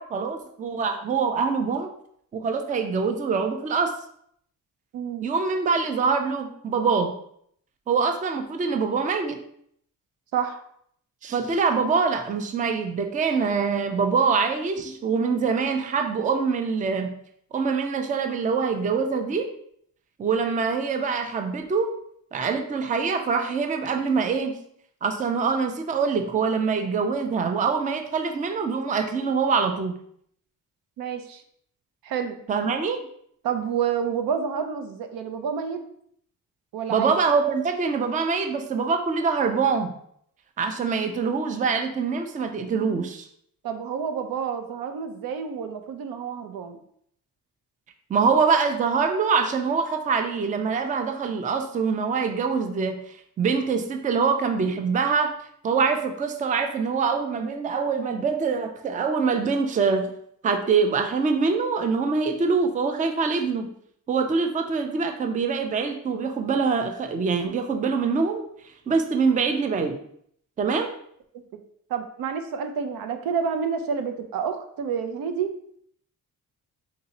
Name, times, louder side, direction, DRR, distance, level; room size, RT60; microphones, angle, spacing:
voice 1, 0.0-1.9 2.3-3.9 5.2-7.1 7.9-9.4 11.2-17.1 17.5-19.5 20.2-21.9 22.3-24.6 25.0-29.9 32.5-33.0 36.9-39.9 40.6-43.2 48.1-53.0 53.4-55.3 55.6-60.1 60.4-63.7 64.1-68.4 68.9-70.0 70.6-70.9, right 5 dB, 25° right, 6 dB, 0.4 m, -24 dB
voice 2, 4.9-5.3 10.3-10.6 31.0-31.4 32.0-32.4 33.4-35.8 36.7-37.2 43.6-46.8 71.5-71.6 71.9-75.5, right 7 dB, 85° right, 7 dB, 0.6 m, -29 dB
3.9 x 2.7 x 4.0 m, 0.67 s
cardioid pair, 145°, 34 cm